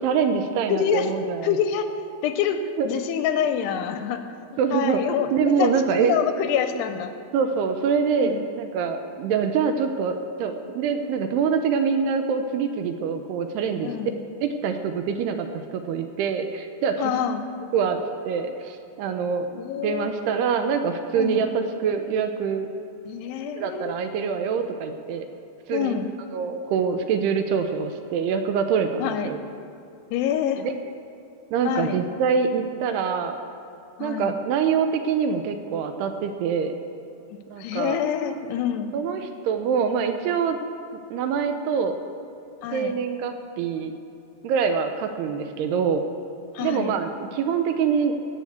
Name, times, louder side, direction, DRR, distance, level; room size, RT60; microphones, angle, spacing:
voice 1, 0.0-1.6 2.8-2.9 4.6-5.0 5.3-6.1 7.3-13.9 14.4-17.1 17.7-19.5 19.8-22.7 23.6-25.3 25.7-26.0 26.3-29.4 30.6-30.7 31.5-33.4 34.0-36.8 37.5-38.0 38.9-40.6 41.1-42.0 42.7-43.9 44.4-46.0 46.6-48.1, right 6 dB, 80° right, 7 dB, 2.6 m, -25 dB
voice 2, 0.7-1.1 1.4-1.9 2.2-4.2 4.7-7.1 8.2-8.5 13.8-14.2 17.0-17.5 19.6-20.1 21.2-21.5 23.1-24.0 25.7-26.1 29.0-29.3 30.1-30.6 31.6-32.0 34.0-34.3 37.6-38.9 42.6-42.9 46.5-47.0, left 8 dB, 85° left, 8 dB, 2.6 m, -26 dB
18.0 x 6.5 x 8.0 m, 2.6 s
omnidirectional pair, 5.0 m